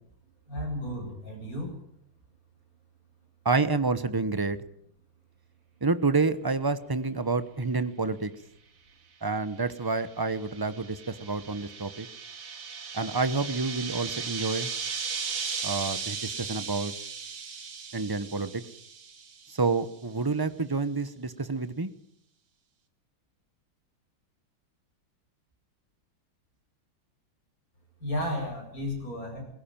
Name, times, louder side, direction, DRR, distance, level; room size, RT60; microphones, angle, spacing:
voice 1, 0.5-1.7 28.0-29.4, left 1 dB, 40° left, 2 dB, 8.1 m, -33 dB
voice 2, 3.4-4.6 5.8-8.3 9.2-12.1 12.9-14.7 15.6-16.9 17.9-18.6 19.5-21.9, right 3 dB, 30° right, 13 dB, 0.4 m, -28 dB
sound 1, 9.8-19.6, right 5 dB, 65° right, 3.0 m, -37 dB
21.0 x 18.0 x 9.0 m, 0.70 s
omnidirectional pair, 2.3 m